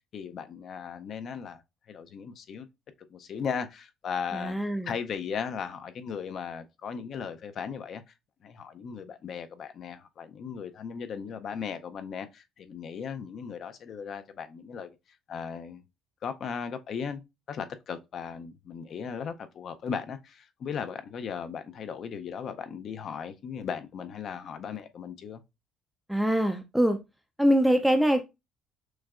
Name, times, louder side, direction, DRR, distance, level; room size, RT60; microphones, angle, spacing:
voice 1, 0.1-1.6 1.9-2.7 3.1-4.6 4.9-8.0 8.4-15.0 15.3-15.8 16.2-17.2 17.5-25.4, left 6 dB, 50° left, 0.5 m, -37 dB
voice 2, 4.3-4.9 26.1-27.0 27.4-28.2, equal, ahead, 0.4 m, -23 dB
6.1 x 2.2 x 2.4 m
cardioid pair, 125°, 0 cm